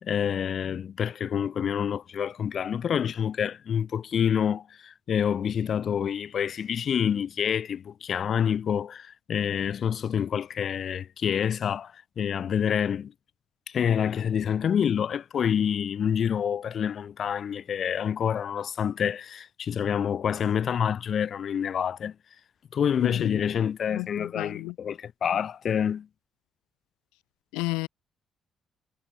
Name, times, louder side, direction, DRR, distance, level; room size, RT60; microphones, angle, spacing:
voice 1, 0.0-13.1 13.7-22.1 22.7-26.1, left 8 dB, 60° left, 3.0 m, -27 dB
voice 2, 23.0-23.4 23.9-24.7 27.5-27.9, left 25 dB, 90° left, 1.1 m, -32 dB
supercardioid pair, 55°, 0 cm